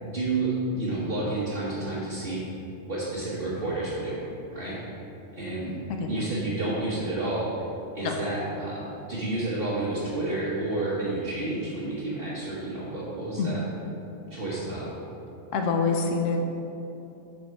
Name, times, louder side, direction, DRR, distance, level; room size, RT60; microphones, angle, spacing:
voice 1, 0.0-2.4 2.9-4.8 5.3-5.8 6.1-7.5 7.9-13.6 14.3-14.9, right 2 dB, 50° right, -8 dB, 1.3 m, -30 dB
voice 2, 6.0-6.3 8.0-8.1 13.4-13.5 15.5-16.4, left 4 dB, 80° left, 3 dB, 1.1 m, -26 dB
6.4 x 5.4 x 4.6 m, 2.9 s
omnidirectional pair, 1.3 m